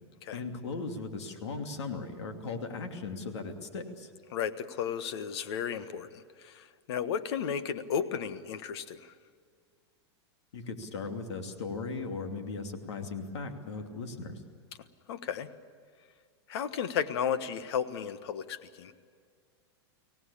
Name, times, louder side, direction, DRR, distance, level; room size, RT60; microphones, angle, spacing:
voice 1, 0.3-4.1 10.5-14.4, left 4 dB, 85° left, 5 dB, 2.7 m, -38 dB
voice 2, 4.3-9.1 15.1-15.5 16.5-18.9, left 8 dB, 70° left, 11 dB, 1.4 m, -34 dB
24.5 x 17.5 x 8.7 m, 2.1 s
supercardioid pair, 135°, 14 cm